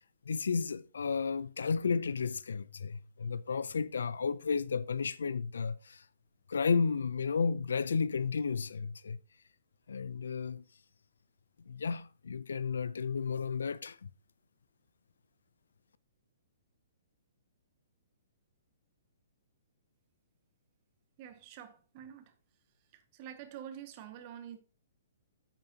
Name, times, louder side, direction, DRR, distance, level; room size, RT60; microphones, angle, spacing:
voice 1, 0.3-6.0 6.5-9.2 9.9-10.6 11.7-14.1, left 5 dB, 75° left, 0.5 m, -33 dB
voice 2, 21.2-22.3 22.9-24.6, right 10 dB, 40° right, 1.8 m, -47 dB
9.1 x 9.1 x 2.9 m
hypercardioid pair, 125°, 0 cm